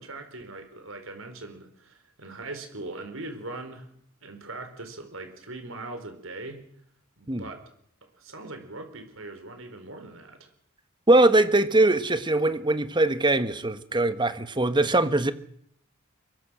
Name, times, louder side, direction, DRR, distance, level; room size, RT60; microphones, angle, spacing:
voice 1, 0.0-3.9 4.2-6.6 7.2-7.6 8.1-10.5, right 2 dB, 80° right, 6 dB, 4.3 m, -40 dB
voice 2, 11.1-15.3, right 2 dB, 25° right, 11 dB, 1.3 m, -21 dB
24.0 x 21.0 x 6.3 m, 0.66 s
head